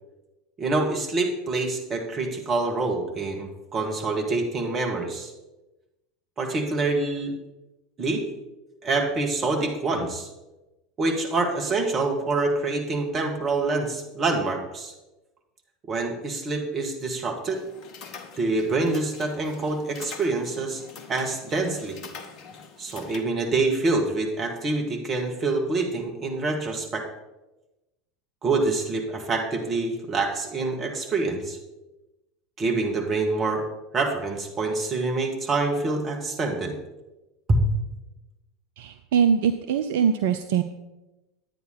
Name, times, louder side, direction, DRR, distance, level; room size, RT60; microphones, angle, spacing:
voice 1, 0.6-5.3 6.4-7.3 8.0-8.2 8.8-10.3 11.0-14.9 15.9-17.7 18.4-20.8 21.1-22.0 22.8-27.1 28.4-31.6 32.6-33.6 33.9-36.7 37.5-37.6, right 3 dB, 30° right, 2 dB, 2.0 m, -26 dB
sound 1, 17.5-23.2, left 5 dB, 45° left, 1.1 m, -44 dB
voice 2, 38.8-40.6, right 7 dB, 60° right, 8 dB, 0.5 m, -22 dB
10.5 x 9.3 x 4.2 m, 1.0 s
figure-of-eight pair, 75°, 0 cm